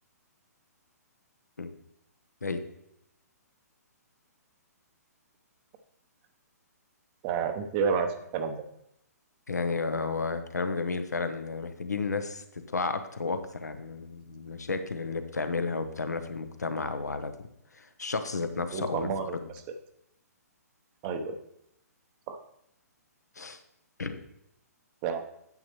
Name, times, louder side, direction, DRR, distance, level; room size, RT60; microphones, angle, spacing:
voice 1, 7.2-8.6 18.7-19.3 21.0-21.4 22.3-22.4 25.0-25.2, right 6 dB, 30° right, 7 dB, 0.7 m, -29 dB
voice 2, 9.5-17.3 17.7-19.5 23.4-23.6 24.0-24.2, left 4 dB, 75° left, 9 dB, 0.8 m, -32 dB
9.3 x 7.2 x 3.0 m, 0.79 s
figure-of-eight pair, 125°, 9 cm